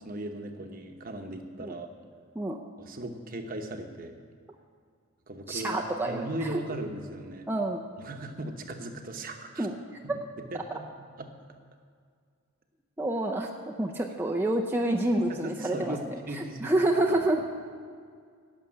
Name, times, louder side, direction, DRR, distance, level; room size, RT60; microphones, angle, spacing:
voice 1, 0.0-1.9 2.8-4.2 5.3-7.5 8.0-9.7 10.5-10.8 11.2-11.3 15.3-16.7 17.1-17.2, right 1 dB, 40° right, 5 dB, 1.0 m, -38 dB
voice 2, 5.5-6.6 7.5-7.8 9.6-10.2 13.0-17.4, right 1 dB, 10° right, 0 dB, 0.5 m, -28 dB
11.5 x 6.8 x 8.6 m, 2.1 s
head